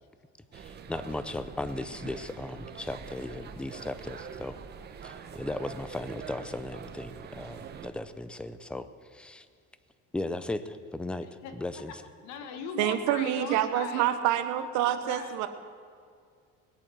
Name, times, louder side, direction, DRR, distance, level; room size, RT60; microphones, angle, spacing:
voice 1, 0.5-4.6 5.0-8.9 9.1-9.4 10.1-11.3 11.6-11.9, left 2 dB, 5° left, 12 dB, 0.5 m, -36 dB
sound 1, 0.5-7.9, right 7 dB, 35° right, 1.0 m, -44 dB
voice 2, 11.2-12.0 12.2-14.1 14.8-15.4, left 6 dB, 75° left, 6 dB, 1.7 m, -40 dB
voice 3, 12.8-15.5, right 11 dB, 75° right, 9 dB, 1.2 m, -27 dB
19.5 x 8.6 x 7.6 m, 2.2 s
cardioid pair, 155°, 29 cm